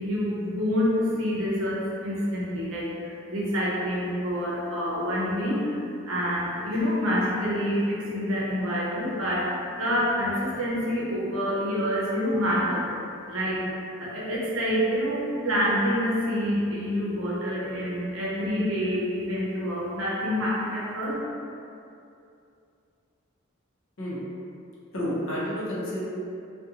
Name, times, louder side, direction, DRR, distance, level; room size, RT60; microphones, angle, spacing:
voice 1, 0.0-9.5 9.8-12.9 13.3-13.7 14.0-21.1, equal, 75° right, -5 dB, 0.6 m, -27 dB
voice 2, 24.9-26.0, equal, 70° left, -7 dB, 0.7 m, -30 dB
2.5 x 2.2 x 2.7 m, 2.6 s
head